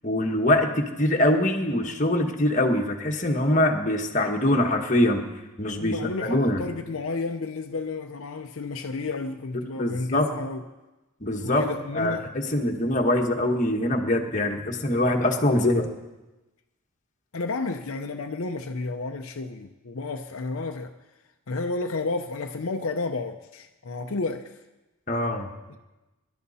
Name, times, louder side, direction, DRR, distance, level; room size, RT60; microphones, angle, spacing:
voice 1, 0.0-5.2 5.6-6.6 9.7-10.3 11.2-11.6 11.9-15.9 25.1-25.5, left 1 dB, 35° left, 2 dB, 1.4 m, -23 dB
voice 2, 5.8-10.6 11.4-12.3 12.6-12.8 17.3-20.9 21.5-24.6 25.7-25.8, left 3 dB, 70° left, 4 dB, 0.7 m, -31 dB
23.0 x 12.0 x 4.2 m, 1.1 s
head